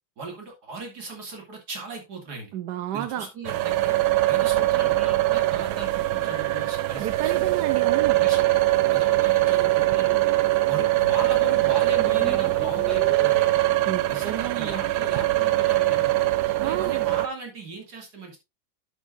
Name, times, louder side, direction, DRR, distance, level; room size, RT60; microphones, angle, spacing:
voice 1, 0.2-2.5 2.9-4.0 4.2-7.5 8.2-10.2 10.7-13.5 14.1-16.3 16.6-18.4, right 3 dB, 50° right, 2.9 m, -37 dB
voice 2, 2.5-3.3 7.0-8.2 13.8-14.9 16.6-17.0, right 12 dB, 65° right, 1.1 m, -31 dB
sound 1, 3.4-17.3, right 17 dB, 90° right, 1.5 m, -22 dB
Glass, 6.3-11.3, right 4 dB, 75° left, 1.7 m, -46 dB
sound 2, 12.0-14.0, equal, ahead, 0.9 m, -39 dB
11.0 x 7.2 x 2.6 m
omnidirectional pair, 2.2 m